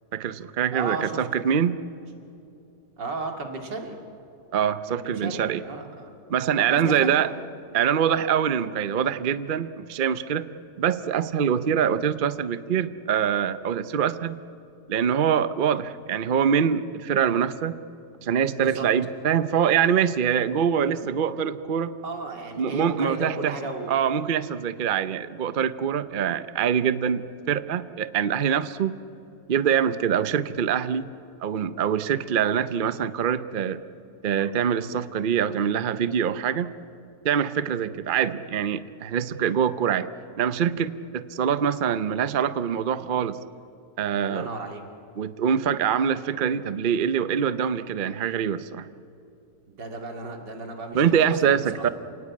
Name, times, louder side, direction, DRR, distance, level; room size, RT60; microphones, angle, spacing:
voice 1, 0.1-1.8 4.5-5.6 6.3-7.3 7.7-10.5 10.8-14.4 14.9-17.8 18.2-21.9 22.6-23.5 23.9-29.0 29.5-31.1 31.4-33.8 34.2-36.7 37.2-40.1 40.4-43.4 44.0-44.5 45.2-48.9 50.9-51.9, right 8 dB, 55° right, 13 dB, 0.5 m, -24 dB
voice 2, 0.7-1.2 3.0-4.0 4.9-6.1 6.5-7.3 18.5-18.9 22.0-24.0 37.7-37.9 44.2-44.8 49.7-51.9, right 3 dB, 90° right, 3 dB, 3.0 m, -34 dB
28.0 x 18.5 x 8.6 m, 2.7 s
omnidirectional pair, 1.8 m